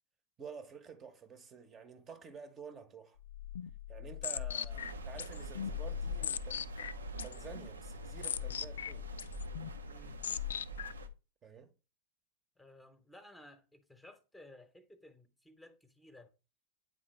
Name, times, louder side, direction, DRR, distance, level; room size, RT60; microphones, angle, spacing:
voice 1, 0.4-3.2 3.9-6.8 7.2-9.1 11.4-11.7, right 6 dB, 25° right, 0.9 m, -50 dB
sound 1, 3.2-11.1, left 9 dB, 65° left, 0.3 m, -40 dB
sound 2, 4.7-11.1, right 4 dB, 75° right, 0.7 m, -46 dB
voice 2, 9.8-10.3 12.6-16.3, left 1 dB, 5° left, 1.0 m, -57 dB
8.9 x 3.8 x 3.1 m
figure-of-eight pair, 90°, 0 cm